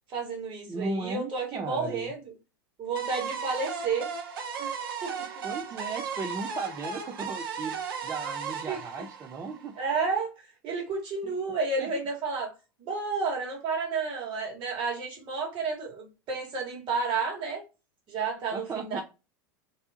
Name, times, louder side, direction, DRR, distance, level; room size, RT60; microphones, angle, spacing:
voice 1, 0.1-2.3 2.8-4.1 4.6-4.7 5.0-5.1 8.7-8.8 9.8-10.3 10.6-12.5 12.8-17.6 18.1-19.0, right 4 dB, 45° right, 1.4 m, -31 dB
voice 2, 0.7-2.1 5.4-9.8 11.2-11.3 11.8-11.9 18.5-19.0, right 4 dB, 25° right, 0.4 m, -36 dB
sound 1, 3.0-9.9, right 6 dB, 70° right, 0.7 m, -36 dB
2.6 x 2.1 x 2.7 m
hypercardioid pair, 95°, 12 cm